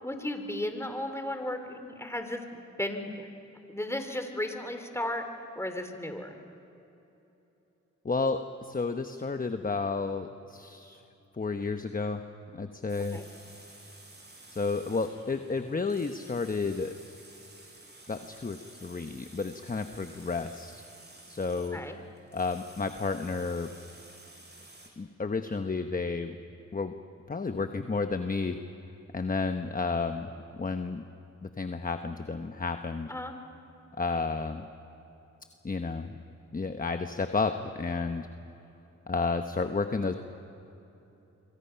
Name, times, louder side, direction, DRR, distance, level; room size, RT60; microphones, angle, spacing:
voice 1, 0.0-3.3 3.7-5.3 5.6-6.4 13.1-13.3 21.7-22.0 33.1-33.3, left 1 dB, 10° left, 6 dB, 3.1 m, -35 dB
voice 2, 8.0-11.0 11.3-12.2 12.5-13.2 14.5-16.9 18.1-20.8 21.3-21.8 22.3-23.7 25.0-26.4 26.7-26.9 27.3-28.6 29.1-30.3 30.6-31.0 31.4-33.1 34.0-34.7 35.6-36.2 36.5-38.3 39.1-40.1, left 4 dB, 30° left, 7 dB, 1.1 m, -31 dB
sound 1, 12.9-24.9, right 2 dB, 35° right, 5.5 m, -53 dB
25.5 x 25.0 x 5.8 m, 3.0 s
cardioid pair, 60°, 30 cm